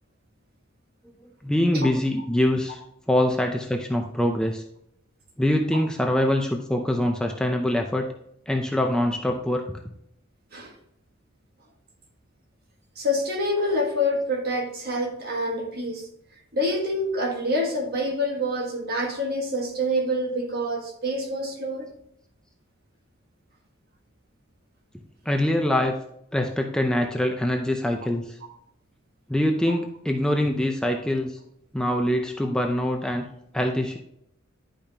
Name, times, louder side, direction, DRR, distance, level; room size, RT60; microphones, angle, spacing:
voice 1, 1.4-2.8 3.1-4.6 5.4-8.1 8.5-9.6 25.3-25.9 26.3-28.4 29.3-31.4 31.7-33.2 33.5-34.0, left 1 dB, 5° left, 2 dB, 0.5 m, -24 dB
voice 2, 13.0-16.0 16.5-21.9 29.7-29.8, left 1 dB, 50° right, 2 dB, 1.5 m, -27 dB
10.5 x 5.2 x 2.9 m, 0.74 s
head